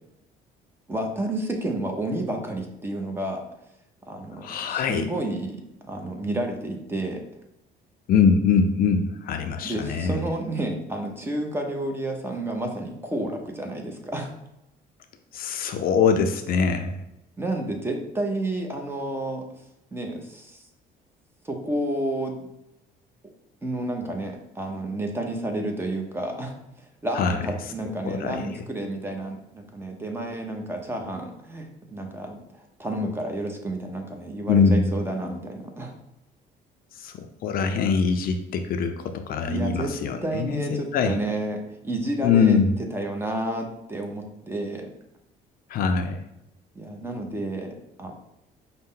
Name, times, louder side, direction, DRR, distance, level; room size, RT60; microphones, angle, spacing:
voice 1, 0.9-3.4 4.1-7.2 9.6-14.3 17.4-19.5 19.9-20.6 21.4-22.5 23.6-26.5 27.0-32.4 32.8-35.9 39.5-39.9 40.2-42.6 42.9-44.9 46.7-48.1, right 1 dB, 15° right, 2 dB, 0.7 m, -30 dB
voice 2, 4.4-5.1 8.1-10.2 15.3-17.0 27.2-27.4 28.1-28.4 34.5-35.0 37.0-41.1 42.2-42.7 45.7-46.2, left 5 dB, 60° left, 7 dB, 0.4 m, -23 dB
5.3 x 2.1 x 3.7 m, 0.86 s
cardioid pair, 110°, 17 cm